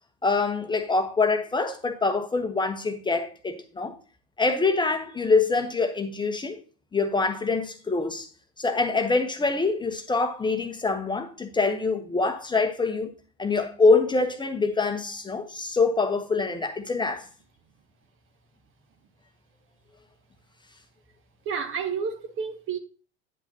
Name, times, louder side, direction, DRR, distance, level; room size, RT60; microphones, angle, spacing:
voice 1, 0.2-3.9 4.4-6.6 6.9-8.3 8.6-13.1 13.4-17.2, left 3 dB, 15° left, 0.9 m, -25 dB
voice 2, 21.4-22.8, right 6 dB, 35° right, 1.0 m, -30 dB
9.3 x 8.1 x 2.8 m
figure-of-eight pair, 80°, 35 cm